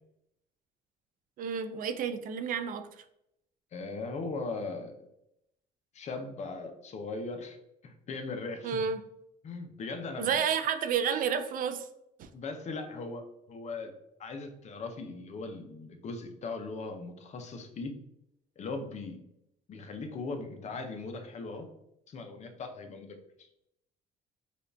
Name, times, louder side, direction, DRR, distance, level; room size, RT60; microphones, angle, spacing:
voice 1, 1.4-3.0 8.6-9.0 10.2-11.9 12.2-12.3, right 7 dB, 55° right, 9 dB, 0.4 m, -30 dB
voice 2, 3.7-5.1 5.9-7.6 7.8-8.8 9.4-10.4 12.3-13.9 14.2-18.0 18.6-19.2 19.7-21.7 22.1-23.5, left 3 dB, 40° left, 6 dB, 0.6 m, -39 dB
5.0 x 2.4 x 2.6 m, 0.81 s
cardioid pair, 110°, 17 cm